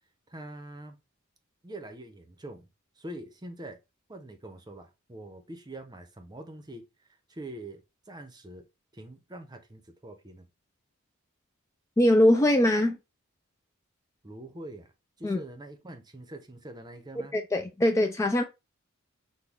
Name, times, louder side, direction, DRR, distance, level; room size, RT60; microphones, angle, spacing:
voice 1, 0.3-1.0 1.6-2.7 3.0-3.8 4.1-6.8 7.3-7.8 8.1-8.6 8.9-10.5 14.2-14.9 15.2-17.3, right 1 dB, 20° right, 0.7 m, -44 dB
voice 2, 12.0-13.0 15.2-15.4 17.3-18.4, left 1 dB, 15° left, 0.3 m, -22 dB
6.1 x 2.2 x 3.5 m
head